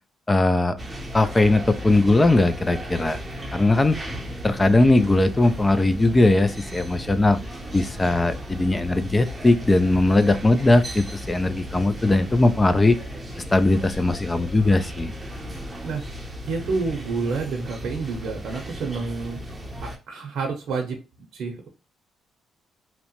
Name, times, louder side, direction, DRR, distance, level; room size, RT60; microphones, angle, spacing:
voice 1, 0.3-0.8 1.1-3.2 3.5-4.0 4.4-7.4 7.7-13.0 13.5-15.1, left 2 dB, 20° left, 12 dB, 0.3 m, -19 dB
sound 1, 0.8-20.0, equal, 15° right, 0.7 m, -36 dB
voice 2, 16.5-19.4 19.8-21.0 21.3-21.7, right 4 dB, 70° right, 1 dB, 0.7 m, -29 dB
2.8 x 2.1 x 2.9 m, 0.31 s
cardioid pair, 90°, 0 cm